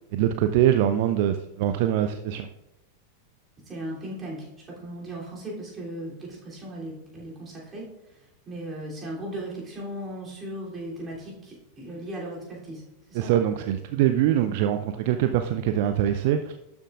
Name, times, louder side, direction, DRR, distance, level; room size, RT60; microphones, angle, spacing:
voice 1, 0.1-2.5 13.1-16.5, right 11 dB, 50° right, 8 dB, 0.4 m, -23 dB
voice 2, 3.7-7.9 8.5-12.8 13.1-13.3, right 1 dB, 20° right, -4 dB, 3.1 m, -37 dB
12.0 x 7.0 x 2.5 m, 0.92 s
figure-of-eight pair, 90°, 0 cm